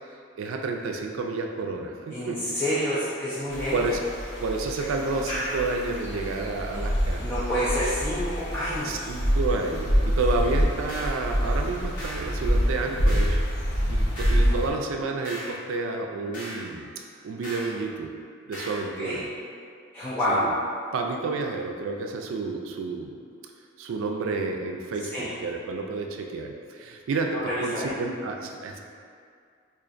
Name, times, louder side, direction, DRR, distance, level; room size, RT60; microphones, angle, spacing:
voice 1, 0.1-2.4 3.7-4.0 4.4-7.3 8.8-13.4 13.9-18.1 18.5-19.3 20.3-20.5 20.9-23.1 23.8-28.8, right 3 dB, 90° right, 2 dB, 0.3 m, -30 dB
voice 2, 2.1-3.8 7.2-9.0 19.0-19.2 19.9-20.4 25.1-25.3 27.5-28.0, equal, 10° left, -11 dB, 0.4 m, -28 dB
sound 1, 3.5-14.7, equal, 65° left, 0.7 m, -26 dB
sound 2, 10.9-11.2 12.0-12.3 13.1-13.4 14.2-14.5 15.2-15.6 16.3-16.7 17.4-17.7 18.5-18.8, equal, 40° left, 0.8 m, -38 dB
4.9 x 2.5 x 2.5 m, 2.3 s
head